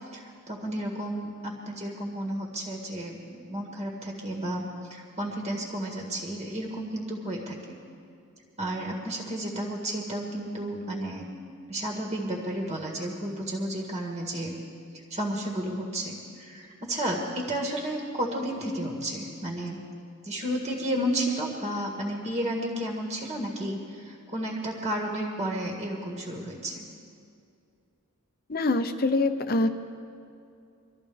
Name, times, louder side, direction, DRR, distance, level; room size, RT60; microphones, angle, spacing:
voice 1, 0.1-7.8 8.6-11.3 11.7-14.6 15.1-19.8 20.2-26.9, right 1 dB, 30° right, -1 dB, 1.9 m, -32 dB
voice 2, 28.5-29.7, left 2 dB, 45° left, 9 dB, 0.8 m, -24 dB
24.0 x 13.5 x 3.5 m, 2.5 s
head